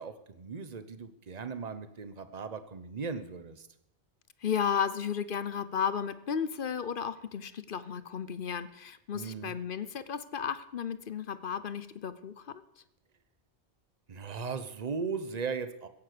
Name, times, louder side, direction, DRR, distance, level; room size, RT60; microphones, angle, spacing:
voice 1, 0.0-3.7 9.1-9.5 14.1-15.9, right 5 dB, 40° right, 11 dB, 1.1 m, -37 dB
voice 2, 4.4-12.6, left 7 dB, 55° left, 14 dB, 0.9 m, -34 dB
16.0 x 10.5 x 6.8 m, 0.81 s
omnidirectional pair, 1.1 m